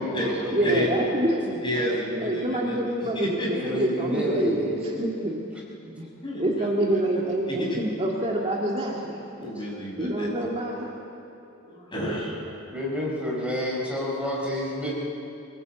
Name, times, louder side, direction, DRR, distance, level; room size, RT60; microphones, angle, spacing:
voice 1, 0.0-1.0 3.4-4.9 12.7-14.9, left 1 dB, 5° right, -4 dB, 4.5 m, -30 dB
voice 2, 0.5-1.6 2.2-5.4 6.0-6.1 6.4-9.2 10.0-10.9, right 1 dB, 30° right, -2 dB, 2.1 m, -26 dB
voice 3, 1.6-3.9 4.9-5.0 6.2-6.7 7.5-7.8 9.4-10.3 11.7-12.6, equal, 25° left, -3 dB, 6.6 m, -30 dB
24.5 x 19.0 x 8.2 m, 2.9 s
head